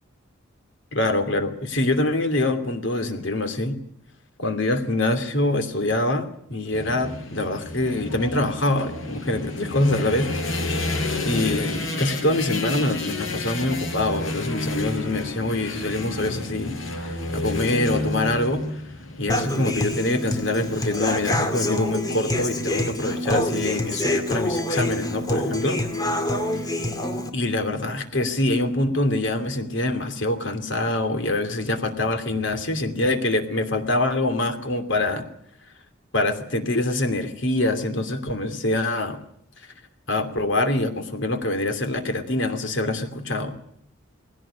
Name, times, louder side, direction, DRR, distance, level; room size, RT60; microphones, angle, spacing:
voice 1, 0.9-3.8 4.4-10.9 11.3-18.6 19.2-25.8 27.3-35.3 36.1-39.2 40.1-43.5, left 2 dB, 65° left, 8 dB, 2.8 m, -25 dB
Telephone, 4.6-5.1 5.6-6.2 6.6-7.2 7.7-8.2 8.7-9.2 9.7-10.2 10.7-11.2 11.7-12.2, right 3 dB, 50° left, 4.3 m, -47 dB
sound 1, 6.7-21.4, left 2 dB, 80° left, 6.8 m, -31 dB
Human voice / Acoustic guitar, 19.3-27.3, left 1 dB, 20° left, 2.3 m, -26 dB
19.5 x 17.0 x 10.0 m, 0.70 s
head